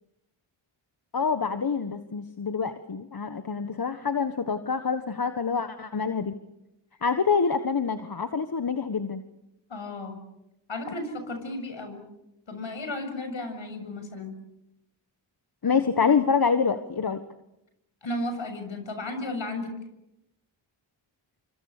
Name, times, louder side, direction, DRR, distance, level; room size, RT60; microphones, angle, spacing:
voice 1, 1.1-6.3 7.0-9.2 15.6-17.2, left 5 dB, 45° left, 9 dB, 1.5 m, -26 dB
voice 2, 9.7-10.2 10.7-12.0 12.5-14.3 18.0-19.7, left 2 dB, 65° left, 7 dB, 7.2 m, -34 dB
26.0 x 26.0 x 6.8 m, 0.88 s
cardioid pair, 50°, 50 cm